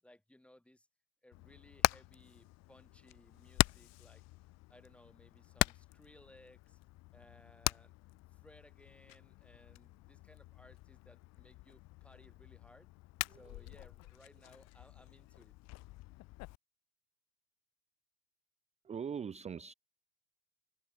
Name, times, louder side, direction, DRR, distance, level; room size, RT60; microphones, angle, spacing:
voice 1, 0.0-0.9 1.2-4.2 4.7-6.8 7.1-8.0 8.3-12.9 13.3-15.6, left 1 dB, 5° left, 6.8 m, -62 dB
Hammer, 1.3-16.6, left 21 dB, 35° left, 1.4 m, -40 dB
voice 2, 13.3-13.7 18.8-19.7, right 7 dB, 15° right, 1.2 m, -42 dB
hypercardioid pair, 110°, 44 cm